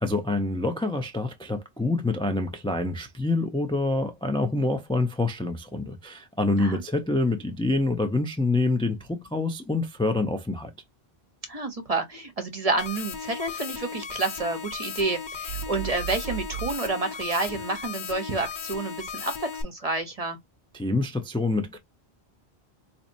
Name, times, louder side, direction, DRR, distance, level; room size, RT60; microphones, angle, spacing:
voice 1, 0.0-10.7 20.7-21.8, left 2 dB, 10° left, 0.4 m, -26 dB
voice 2, 11.5-20.4, right 3 dB, 35° right, 0.9 m, -29 dB
sound 1, 12.8-19.6, left 6 dB, 50° left, 0.8 m, -36 dB
sound 2, 15.5-16.8, right 10 dB, 65° right, 0.7 m, -35 dB
4.2 x 2.9 x 2.6 m
omnidirectional pair, 1.1 m